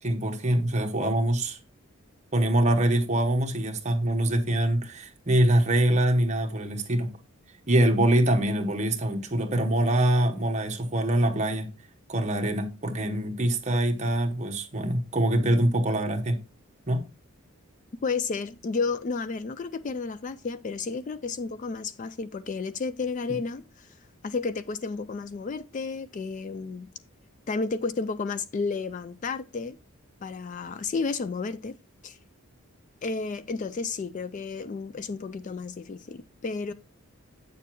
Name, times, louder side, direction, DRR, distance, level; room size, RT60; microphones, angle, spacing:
voice 1, 0.0-1.6 2.3-7.1 7.7-11.7 12.1-16.4 16.9-17.1, right 1 dB, 30° right, 1.0 m, -24 dB
voice 2, 18.0-23.9 24.2-26.9 27.5-29.8 30.2-31.8 32.0-32.2 33.0-36.7, left 4 dB, 35° left, 0.3 m, -32 dB
8.3 x 6.8 x 3.0 m
head